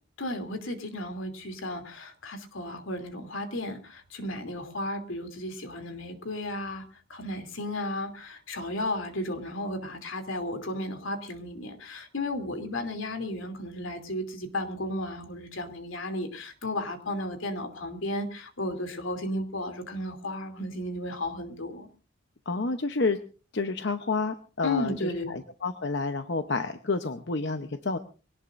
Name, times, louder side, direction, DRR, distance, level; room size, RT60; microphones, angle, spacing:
voice 1, 0.2-21.9 24.6-25.3, left 1 dB, 85° left, 6 dB, 3.0 m, -34 dB
voice 2, 22.5-23.2 23.5-28.0, left 3 dB, 60° left, 8 dB, 0.9 m, -29 dB
23.5 x 18.0 x 2.6 m, 0.36 s
head